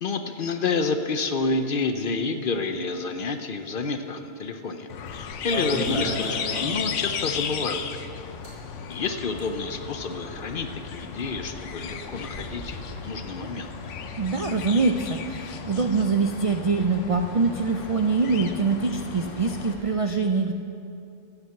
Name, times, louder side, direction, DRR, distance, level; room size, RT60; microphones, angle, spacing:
voice 1, 0.0-8.0 8.9-13.7, left 4 dB, 55° left, 7 dB, 0.7 m, -29 dB
sound 1, 4.9-19.7, left 7 dB, 75° left, 1.0 m, -35 dB
sound 2, 5.1-7.0 7.3-7.4 7.7-7.8 8.3-20.0, left 1 dB, 30° left, 3.6 m, -39 dB
voice 2, 14.2-20.5, right 4 dB, 60° right, 5 dB, 0.3 m, -24 dB
15.0 x 5.8 x 8.0 m, 2.7 s
omnidirectional pair, 1.3 m